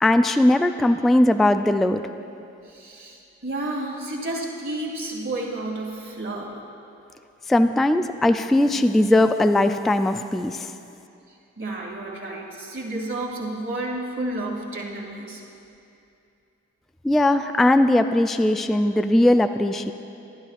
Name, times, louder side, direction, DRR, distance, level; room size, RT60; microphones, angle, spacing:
voice 1, 0.0-2.0 7.5-10.7 17.0-19.9, left 1 dB, ahead, 9 dB, 0.3 m, -19 dB
voice 2, 2.6-6.6 11.3-15.4, right 2 dB, 40° right, -2 dB, 2.4 m, -31 dB
12.5 x 11.5 x 2.4 m, 2.6 s
hypercardioid pair, 40°, 32 cm